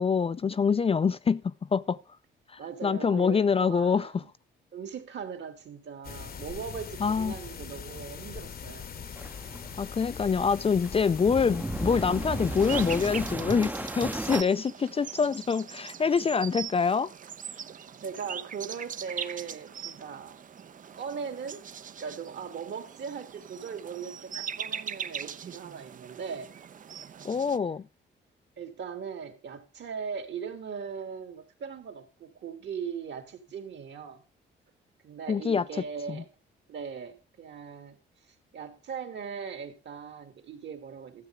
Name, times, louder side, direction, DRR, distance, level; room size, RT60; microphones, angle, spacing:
voice 1, 0.0-2.0 2.5-4.2 7.0-7.4 9.8-17.1 27.2-27.9 35.3-36.2, left 6 dB, 30° left, 0.5 m, -26 dB
voice 2, 2.6-4.3 4.7-8.9 18.0-20.4 20.9-21.7 22.0-26.5 28.6-34.2 35.0-36.3 36.7-38.0 38.5-41.3, right 6 dB, 65° right, 2.7 m, -39 dB
sound 1, 6.0-13.4, left 7 dB, 50° left, 1.1 m, -41 dB
sound 2, 9.2-14.4, right 2 dB, 10° right, 0.7 m, -35 dB
sound 3, 12.5-27.6, right 7 dB, 40° right, 0.7 m, -41 dB
13.5 x 7.9 x 4.9 m
cardioid pair, 90°, 20 cm